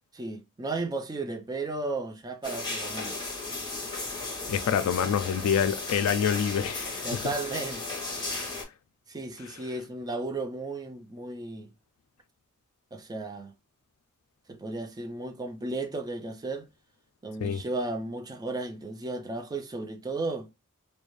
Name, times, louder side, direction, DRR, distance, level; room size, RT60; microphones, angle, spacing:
voice 1, 0.1-3.2 7.0-8.0 9.1-11.7 12.9-13.5 14.5-16.7 17.2-20.5, right 2 dB, 20° right, 0.4 m, -34 dB
sound 1, 2.4-8.6, left 3 dB, 20° left, 0.9 m, -35 dB
voice 2, 4.5-7.3 8.4-8.5 17.4-17.6, left 8 dB, 80° left, 0.3 m, -27 dB
2.5 x 2.1 x 3.0 m
head